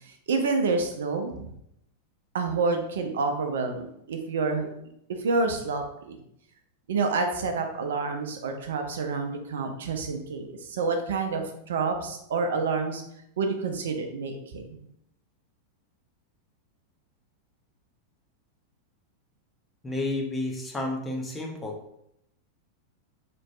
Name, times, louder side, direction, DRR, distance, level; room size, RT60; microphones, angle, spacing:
voice 1, 0.3-1.5 2.3-4.7 5.1-6.2 6.9-13.0 13.4-14.9, right 4 dB, 60° right, 5 dB, 0.5 m, -28 dB
voice 2, 19.8-21.8, left 2 dB, 10° left, 0 dB, 0.8 m, -31 dB
4.1 x 3.0 x 2.3 m, 0.75 s
figure-of-eight pair, 90°, 0 cm